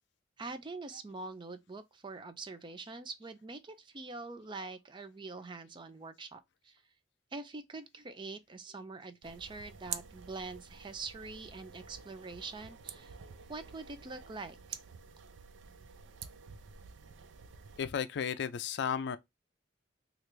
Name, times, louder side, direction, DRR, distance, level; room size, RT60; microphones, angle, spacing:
voice 1, 0.4-6.8 7.3-13.2 13.5-14.8, right 3 dB, 25° right, 0.4 m, -44 dB
sound 1, 9.2-17.8, right 7 dB, 85° right, 0.4 m, -48 dB
voice 2, 17.8-19.2, left 7 dB, 65° left, 0.4 m, -34 dB
3.3 x 2.4 x 3.1 m
head